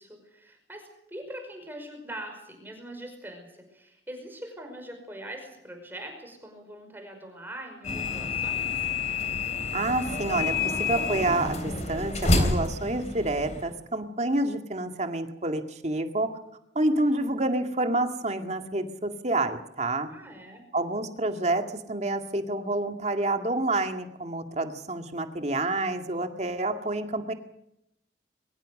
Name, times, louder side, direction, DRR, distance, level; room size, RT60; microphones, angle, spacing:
voice 1, 0.0-8.9 17.0-17.3 20.1-20.6, right 1 dB, 10° right, 4 dB, 5.5 m, -42 dB
sound 1, 7.8-13.7, left 3 dB, 40° left, 3.6 m, -28 dB
voice 2, 9.7-10.5 10.8-16.3 16.8-20.1 20.7-27.3, right 2 dB, 35° right, 6 dB, 2.2 m, -28 dB
23.0 x 21.5 x 6.6 m, 0.81 s
head